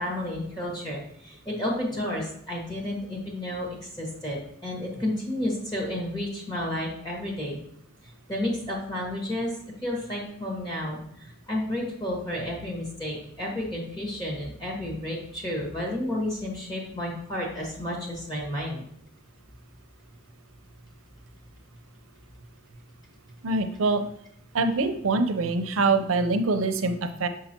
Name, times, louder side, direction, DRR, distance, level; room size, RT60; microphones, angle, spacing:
voice 1, 0.0-7.6 8.3-18.8, left 1 dB, 20° left, -3 dB, 1.7 m, -31 dB
voice 2, 23.4-24.0 24.5-27.3, right 3 dB, 90° right, 8 dB, 0.6 m, -24 dB
6.2 x 5.6 x 2.9 m, 0.71 s
head